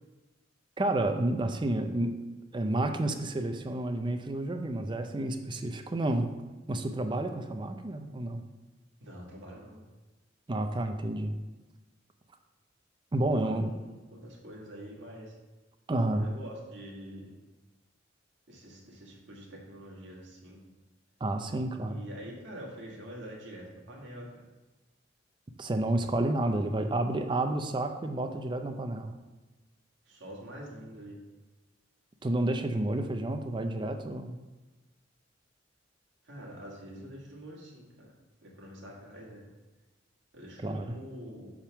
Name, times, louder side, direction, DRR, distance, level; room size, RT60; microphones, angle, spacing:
voice 1, 0.8-2.1 2.5-6.3 6.7-8.4 10.5-11.4 13.1-13.7 15.9-16.3 21.2-22.0 25.6-29.1 32.2-34.4 40.6-40.9, right 1 dB, 25° right, 6 dB, 0.5 m, -30 dB
voice 2, 9.0-9.8 13.3-15.4 16.1-17.3 18.5-20.6 21.9-24.4 30.1-31.2 36.2-38.1 38.4-39.4 40.3-41.5, equal, 70° right, -3 dB, 1.9 m, -46 dB
7.3 x 3.6 x 5.8 m, 1.2 s
head